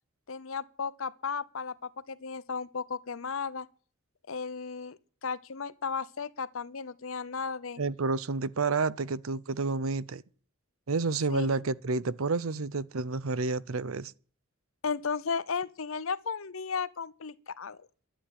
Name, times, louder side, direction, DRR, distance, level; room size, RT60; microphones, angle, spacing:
voice 1, 0.3-3.7 4.3-7.8 11.3-11.6 14.8-17.8, left 5 dB, 70° left, 0.8 m, -35 dB
voice 2, 7.8-10.2 10.9-14.1, right 3 dB, 80° right, 0.7 m, -30 dB
11.5 x 8.8 x 10.0 m
head